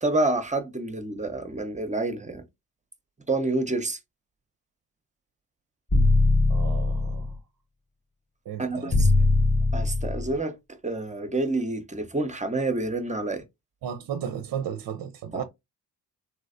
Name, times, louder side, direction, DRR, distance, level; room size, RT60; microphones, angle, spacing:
voice 1, 0.0-2.4 3.3-4.0 8.6-9.1 9.7-10.5 10.8-13.4 15.3-15.4, right 2 dB, 15° right, 0.7 m, -28 dB
sound 1, 5.9-7.3 8.9-10.3, left 2 dB, 15° left, 0.4 m, -21 dB
voice 2, 6.5-7.4 8.5-9.3 13.8-15.4, right 8 dB, 55° right, 0.6 m, -34 dB
3.1 x 2.8 x 2.5 m
hypercardioid pair, 45°, 43 cm